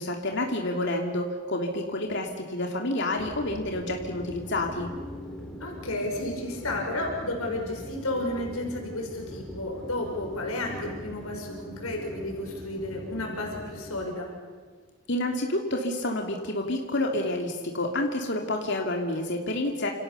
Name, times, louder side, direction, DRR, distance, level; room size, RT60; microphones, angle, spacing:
voice 1, 0.0-4.9 15.1-19.9, left 1 dB, 55° left, 2 dB, 2.8 m, -29 dB
sound 1, 3.2-14.1, left 1 dB, 5° left, 3.8 m, -41 dB
voice 2, 5.6-14.3, left 1 dB, 85° left, 1 dB, 5.9 m, -32 dB
29.5 x 28.0 x 7.0 m, 1.5 s
head